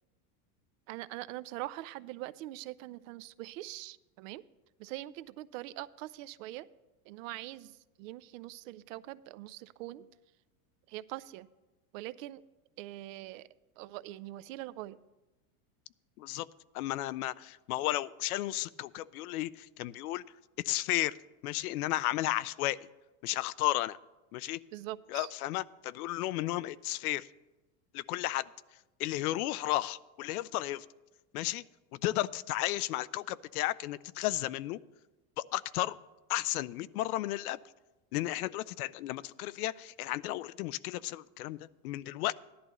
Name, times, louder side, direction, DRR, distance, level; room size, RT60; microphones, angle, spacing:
voice 1, 0.9-4.4 4.8-6.7 7.1-10.1 10.9-11.5 11.9-12.4 12.8-13.5 13.8-15.0 24.7-25.3, right 16 dB, 65° right, 16 dB, 0.5 m, -43 dB
voice 2, 16.2-16.5 16.7-20.2 20.6-21.2 21.4-22.9 23.2-24.0 24.3-24.6 25.1-27.3 27.9-28.5 29.0-30.9 31.3-31.6 31.9-34.8 35.4-36.0 36.3-37.6 38.1-42.3, left 16 dB, 90° left, 18 dB, 0.5 m, -33 dB
15.0 x 11.0 x 3.0 m, 1.1 s
supercardioid pair, 145°, 43 cm